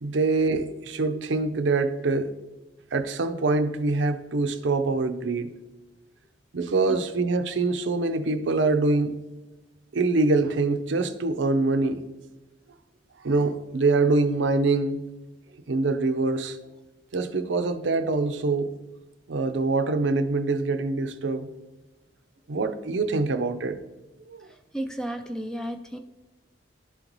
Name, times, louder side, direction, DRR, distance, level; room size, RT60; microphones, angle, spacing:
voice 1, 0.0-2.3 2.9-5.5 6.5-9.2 9.9-12.0 13.2-15.0 15.7-16.6 17.1-18.7 19.3-21.5 22.5-23.8 24.3-24.4, right 3 dB, 80° right, 0.5 m, -24 dB
voice 2, 24.5-26.0, right 1 dB, 5° left, 0.3 m, -33 dB
11.5 x 3.9 x 3.0 m
head